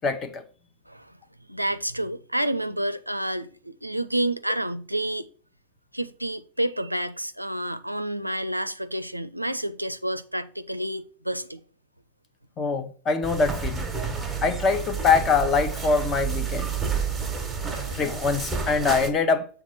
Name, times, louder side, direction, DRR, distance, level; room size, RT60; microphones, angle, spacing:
voice 1, 0.0-0.4 12.6-13.9 14.4-16.7 17.6-19.5, left 4 dB, 25° left, 0.9 m, -24 dB
voice 2, 0.9-1.2 1.5-5.3 5.9-11.6 17.7-18.0, right 1 dB, 90° right, 0.4 m, -29 dB
sound 1, 13.2-19.1, right 6 dB, 5° right, 1.3 m, -30 dB
7.2 x 3.4 x 5.7 m
figure-of-eight pair, 90°, 0 cm